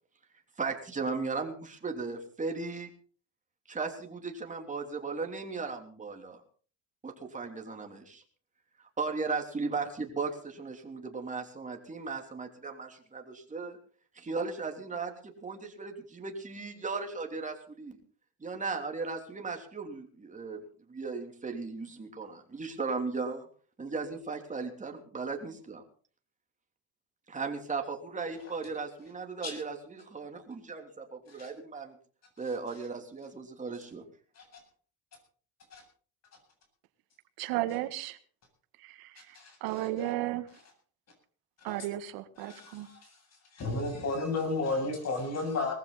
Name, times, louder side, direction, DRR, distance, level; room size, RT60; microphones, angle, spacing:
voice 1, 0.6-2.9 3.7-6.4 7.0-8.2 8.8-13.8 14.1-18.0 18.4-20.6 20.9-23.5 23.8-25.8 27.3-31.9 32.4-34.0, right 4 dB, 20° right, 3 dB, 3.2 m, -36 dB
voice 2, 37.4-38.2 38.8-40.5 41.6-42.9, right 14 dB, 75° right, 11 dB, 1.7 m, -34 dB
voice 3, 39.3-39.9 41.7-41.8 42.4-43.1 43.5-45.7, left 3 dB, 45° left, 4 dB, 8.0 m, -33 dB
20.0 x 15.0 x 4.1 m, 0.43 s
cardioid pair, 110°, 36 cm